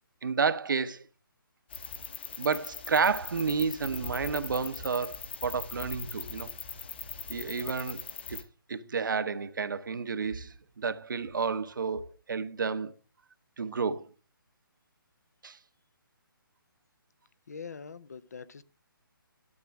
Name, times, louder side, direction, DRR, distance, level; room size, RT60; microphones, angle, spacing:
voice 1, 0.2-1.1 2.4-6.5 7.3-8.4 8.7-12.9 13.6-14.1 15.4-15.6, right 5 dB, 60° right, 0.9 m, -31 dB
sound 1, 1.7-8.4, left 6 dB, 30° left, 1.0 m, -41 dB
voice 2, 17.5-18.6, left 5 dB, 45° left, 0.5 m, -43 dB
12.0 x 7.4 x 3.5 m
hypercardioid pair, 175°, 12 cm